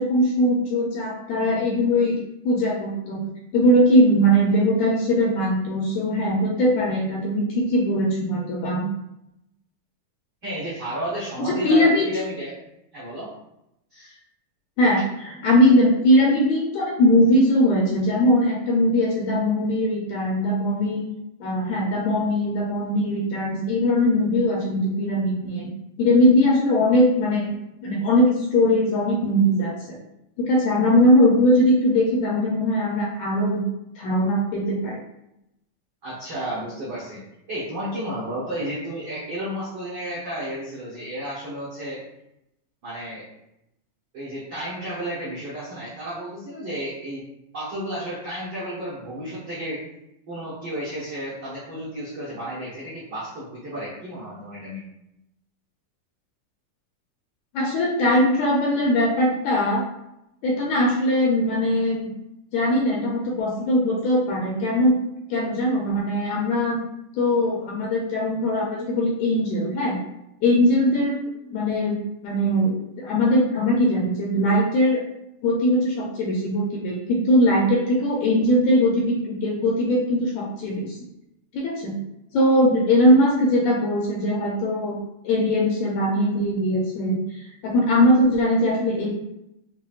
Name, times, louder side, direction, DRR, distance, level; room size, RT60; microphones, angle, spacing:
voice 1, 0.0-2.2 2.4-3.2 3.5-8.9 11.4-12.1 14.8-21.0 21.4-25.7 26.0-27.6 27.8-30.0 30.4-33.6 34.0-35.0 57.5-59.8 60.4-62.1 62.5-65.0 65.3-66.8 67.1-70.0 70.4-71.2 71.5-72.0 72.2-75.0 75.4-81.0 81.5-81.9 82.3-85.0 85.2-89.1, equal, 75° left, -4 dB, 1.7 m, -20 dB
voice 2, 10.4-12.6 12.9-13.3 13.9-14.2 36.0-37.2 37.5-42.0 42.8-43.3 44.1-47.2 47.5-49.8 50.3-54.8, right 1 dB, 85° right, -8 dB, 0.9 m, -32 dB
5.8 x 2.2 x 2.4 m, 0.85 s
omnidirectional pair, 3.5 m